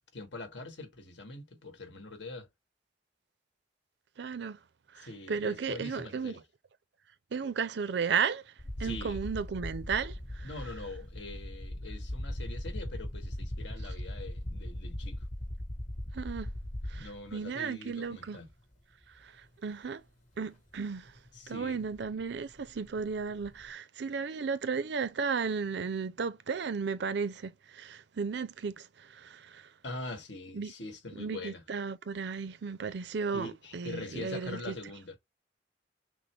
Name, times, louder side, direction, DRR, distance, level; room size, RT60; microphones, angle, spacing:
voice 1, 0.1-2.5 5.0-6.4 8.8-9.2 10.4-15.3 16.9-18.5 21.3-21.8 29.8-31.6 33.3-35.2, left 2 dB, 90° left, 1.5 m, -43 dB
voice 2, 4.2-4.6 4.9-6.3 7.3-8.4 8.8-10.5 16.1-16.5 16.9-18.4 19.2-19.3 19.6-20.0 20.4-21.1 21.5-29.7 30.5-30.7 31.2-34.7, right 5 dB, 70° right, 0.5 m, -34 dB
sound 1, 8.6-17.3 18.5-18.6 20.7-20.8 21.1-23.6, left 1 dB, 45° left, 1.1 m, -39 dB
6.0 x 2.0 x 3.3 m
head